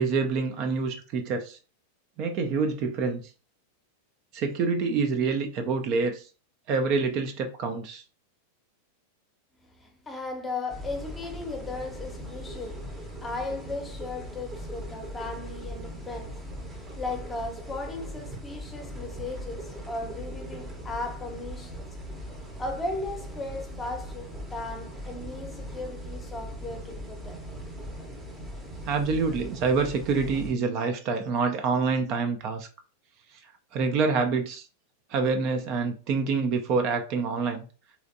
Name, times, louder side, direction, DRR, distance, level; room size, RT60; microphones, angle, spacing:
voice 1, 0.0-1.6 2.2-3.2 4.3-6.3 6.7-8.0 28.8-32.7 33.3-34.7 35.1-37.6, right 4 dB, 40° right, 0.5 m, -27 dB
voice 2, 9.6-21.9 22.6-27.4, left 2 dB, 15° left, 0.8 m, -36 dB
sound 1, 10.7-30.5, equal, 15° right, 0.8 m, -40 dB
3.2 x 2.9 x 2.6 m
figure-of-eight pair, 90°, 0 cm